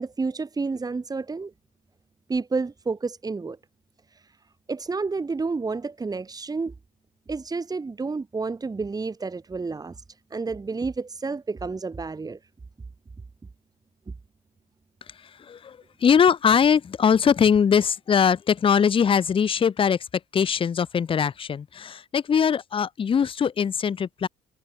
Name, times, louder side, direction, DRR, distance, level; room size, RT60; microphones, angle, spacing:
voice 1, 0.0-1.5 2.3-3.6 4.1-4.2 4.7-6.7 7.3-10.0 10.3-12.4, right 4 dB, 20° right, 4.1 m, -30 dB
voice 2, 15.1-20.1 20.3-24.3, left 7 dB, 30° left, 0.8 m, -21 dB
cardioid pair, 110°, 17 cm